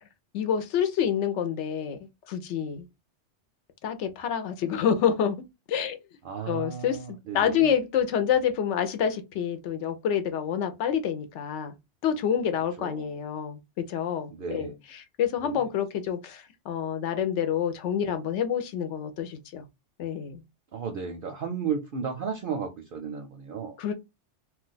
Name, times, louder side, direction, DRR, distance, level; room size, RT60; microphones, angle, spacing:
voice 1, 0.3-2.0 2.3-2.9 3.8-5.4 5.7-6.0 6.5-11.7 12.0-13.6 13.9-14.7 15.2-19.6 20.0-20.4 23.8-23.9, left 8 dB, 80° left, 0.9 m, -27 dB
voice 2, 6.2-7.7 12.8-13.1 14.3-14.8 15.4-15.6 20.7-23.8, right 6 dB, 60° right, 0.6 m, -34 dB
2.4 x 2.3 x 3.8 m
omnidirectional pair, 1.2 m